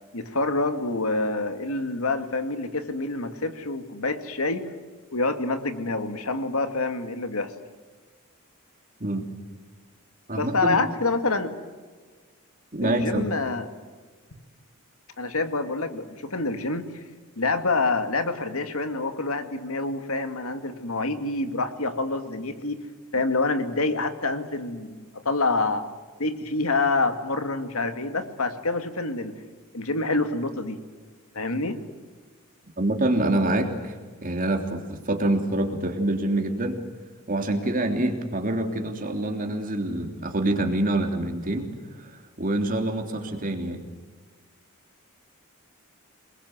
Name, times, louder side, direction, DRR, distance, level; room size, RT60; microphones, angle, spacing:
voice 1, 0.1-4.6 5.1-7.5 10.4-11.5 12.8-13.6 15.2-17.0 17.4-22.8 23.1-25.8 26.2-29.3 29.7-30.8 31.3-31.8, left 3 dB, 75° left, 8 dB, 2.3 m, -27 dB
voice 2, 10.3-10.9 12.7-13.3 32.8-33.9 34.2-36.8 37.3-41.7 42.0-43.8, right 1 dB, 40° right, 4 dB, 3.2 m, -26 dB
28.0 x 21.5 x 8.1 m, 1.4 s
head